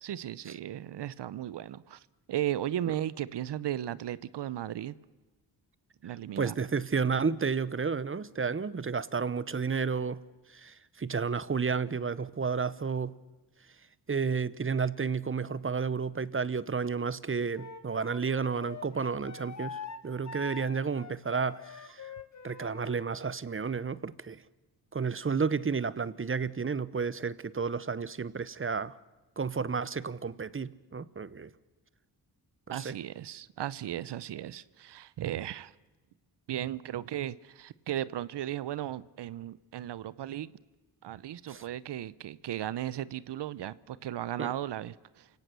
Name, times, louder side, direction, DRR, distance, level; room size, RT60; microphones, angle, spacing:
voice 1, 0.0-4.9 6.0-6.5 32.7-35.7 36.5-40.5 41.0-45.3, right 12 dB, 80° right, 0.8 m, -36 dB
voice 2, 6.4-10.2 10.5-13.1 14.1-22.1 22.4-24.4 24.9-28.9 29.4-31.5 32.7-32.9 41.5-41.6 44.4-44.5, right 5 dB, 30° right, 1.0 m, -31 dB
Wind instrument woodwind instrument, 17.5-23.0, left 5 dB, 45° left, 1.9 m, -44 dB
29.0 x 17.5 x 6.9 m
cardioid pair, 75°, 41 cm